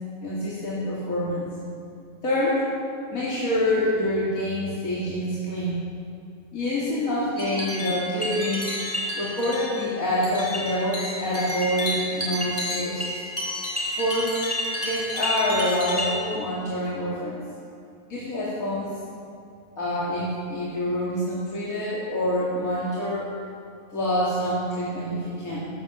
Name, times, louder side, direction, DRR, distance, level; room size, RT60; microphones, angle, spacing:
voice 1, 0.2-1.5 2.2-2.6 3.1-5.8 6.5-8.7 9.1-13.2 14.0-14.3 14.8-17.4 18.1-18.9 19.8-23.3 23.9-25.7, left 1 dB, 75° left, -8 dB, 2.8 m, -26 dB
sound 1, 7.4-16.1, left 1 dB, 10° right, 3.5 m, -30 dB
13.0 x 10.0 x 7.0 m, 2.5 s
omnidirectional pair, 1.5 m